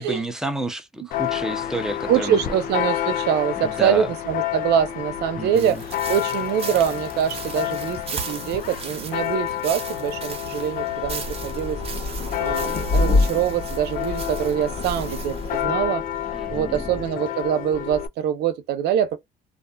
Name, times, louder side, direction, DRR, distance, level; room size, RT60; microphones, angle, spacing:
voice 1, 0.0-2.6 3.6-4.1 5.4-5.8 16.3-16.9, right 1 dB, 5° right, 0.7 m, -30 dB
Church bell, 1.1-18.1, left 12 dB, 55° left, 0.4 m, -30 dB
voice 2, 2.1-5.8 6.1-11.8 12.1-16.0 16.5-19.2, right 9 dB, 80° right, 0.8 m, -24 dB
sound 1, 5.5-15.7, right 5 dB, 35° right, 0.9 m, -37 dB
sound 2, 11.0-17.1, left 2 dB, 35° left, 1.1 m, -27 dB
2.6 x 2.4 x 2.2 m
cardioid pair, 110°, 17 cm